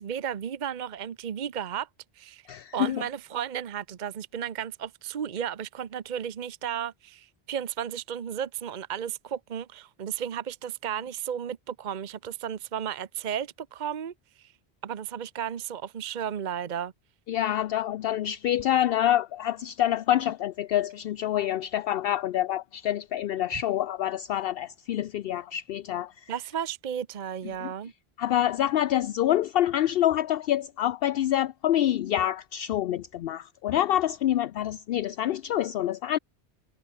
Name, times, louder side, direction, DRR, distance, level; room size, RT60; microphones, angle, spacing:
voice 1, 0.0-1.9 2.2-2.4 2.7-14.1 14.8-16.9 26.3-27.9, right 9 dB, 50° right, 0.8 m, -34 dB
voice 2, 2.5-3.0 17.3-26.3 27.6-27.7 28.2-36.2, left 12 dB, 70° left, 0.7 m, -26 dB
omnidirectional pair, 1.1 m